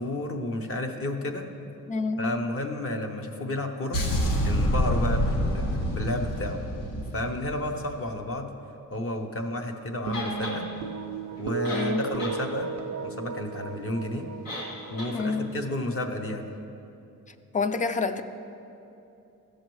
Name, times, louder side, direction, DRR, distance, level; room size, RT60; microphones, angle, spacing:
voice 1, 0.0-1.5 2.2-4.0 4.4-6.6 7.1-8.5 8.9-10.7 11.4-12.7 13.0-14.3 14.9-16.5, left 1 dB, 40° left, 4 dB, 0.8 m, -31 dB
voice 2, 1.9-2.4 11.7-12.1 15.1-15.5 17.5-18.2, left 4 dB, 25° left, 10 dB, 0.3 m, -28 dB
sound 1, 3.9-8.0, equal, 70° left, 1.1 m, -27 dB
sound 2, 10.1-10.6 11.4-11.5 11.6-12.4 12.7-12.8 14.5-14.7 15.0-15.1, left 2 dB, 90° left, 1.9 m, -35 dB
sound 3, 10.1-16.6, right 5 dB, 55° right, 0.5 m, -36 dB
14.5 x 6.5 x 3.1 m, 2.8 s
cardioid pair, 125°, 34 cm